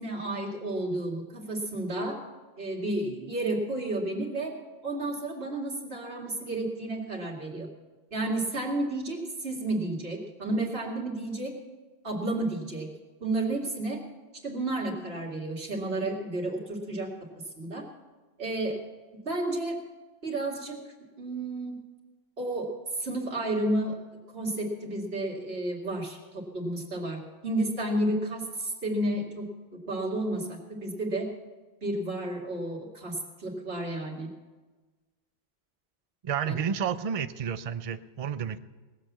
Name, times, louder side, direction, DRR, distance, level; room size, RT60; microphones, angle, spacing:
voice 1, 0.0-2.2 2.6-4.5 4.8-7.7 8.1-11.5 12.0-12.9 13.2-14.0 14.4-17.1 17.6-17.8 18.4-18.8 19.2-19.8 20.2-20.8 21.2-21.7 22.4-22.7 23.0-23.9 24.3-29.5 29.9-31.3 31.8-34.3 36.4-36.6, right 1 dB, 70° right, 0 dB, 2.5 m, -31 dB
voice 2, 36.2-38.6, right 7 dB, 45° right, 13 dB, 0.5 m, -31 dB
18.5 x 7.8 x 7.3 m, 1.3 s
omnidirectional pair, 1.1 m